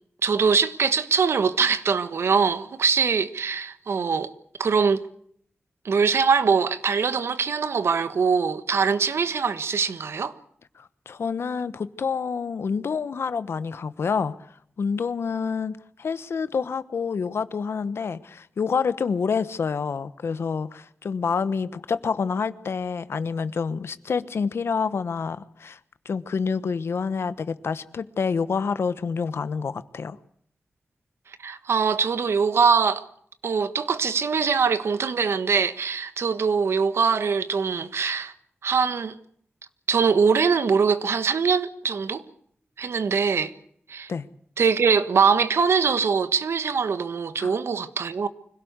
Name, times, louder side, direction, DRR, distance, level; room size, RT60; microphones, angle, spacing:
voice 1, 0.2-4.3 4.6-5.0 5.8-10.3 31.4-33.0 33.4-38.3 38.6-39.2 39.9-42.2 42.8-43.5 43.9-44.1 44.6-48.3, right 5 dB, 85° right, 1.4 m, -22 dB
voice 2, 10.8-14.3 14.8-25.8 26.0-30.2 44.1-44.3 47.4-47.5, left 5 dB, 80° left, 1.1 m, -28 dB
25.0 x 17.0 x 8.1 m
wide cardioid pair, 130°, 4 cm